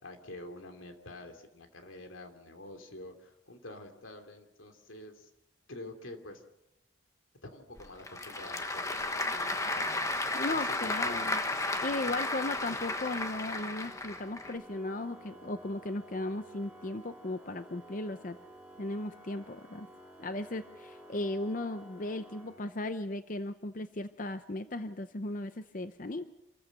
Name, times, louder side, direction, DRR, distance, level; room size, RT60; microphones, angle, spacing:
voice 1, 0.0-5.3 5.7-6.4 7.4-11.3 12.1-12.2, left 2 dB, 85° left, 5 dB, 3.0 m, -48 dB
Applause / Crowd, 7.8-14.5, left 2 dB, 15° left, 1.1 m, -33 dB
voice 2, 10.3-11.4 11.8-18.4 18.8-19.9 20.2-26.2, left 2 dB, 40° left, 10 dB, 0.7 m, -36 dB
Organ, 12.2-23.1, right 1 dB, 5° right, 2.1 m, -53 dB
28.0 x 14.5 x 6.6 m, 0.89 s
head